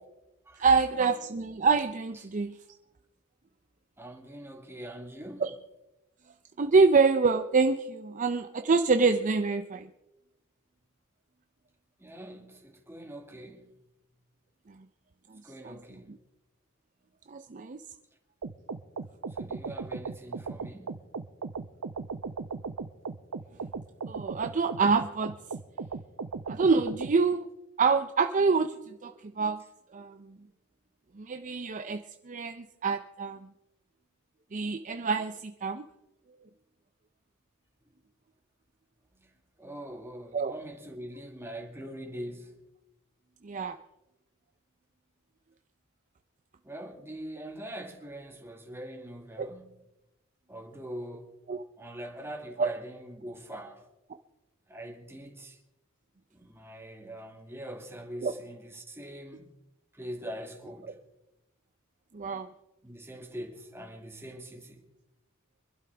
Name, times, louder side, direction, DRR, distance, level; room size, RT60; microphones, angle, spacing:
voice 1, 0.6-2.6 5.4-5.5 6.6-9.9 15.6-15.7 17.3-17.8 24.1-25.3 26.5-27.5 27.8-29.6 29.9-30.4 31.2-32.0 32.3-33.5 34.5-35.8 40.3-40.5 43.4-43.8 49.4-49.5 51.5-51.6 52.6-52.7 58.2-58.3 62.1-62.5, right 4 dB, 35° right, 0.5 m, -26 dB
voice 2, 4.0-5.5 12.0-13.7 15.4-16.2 19.3-21.1 39.6-42.6 46.6-49.8 50.5-51.3 51.8-53.8 54.7-55.6 56.3-59.5 59.9-61.0 62.8-64.8, right 1 dB, 10° right, 2.0 m, -43 dB
sound 1, 18.4-27.1, right 4 dB, 85° right, 0.7 m, -37 dB
25.5 x 12.0 x 3.4 m
head